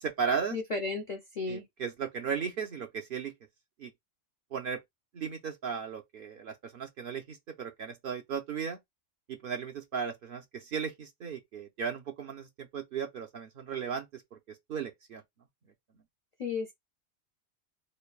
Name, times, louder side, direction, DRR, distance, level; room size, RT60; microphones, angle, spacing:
voice 1, 0.0-0.6 1.5-3.3 3.8-3.9 4.5-4.8 5.1-8.8 9.3-14.2 14.7-15.2, right 6 dB, 55° right, 0.7 m, -36 dB
voice 2, 0.5-1.6 16.4-16.7, left 4 dB, 60° left, 0.4 m, -34 dB
3.2 x 2.1 x 2.3 m
omnidirectional pair, 1.3 m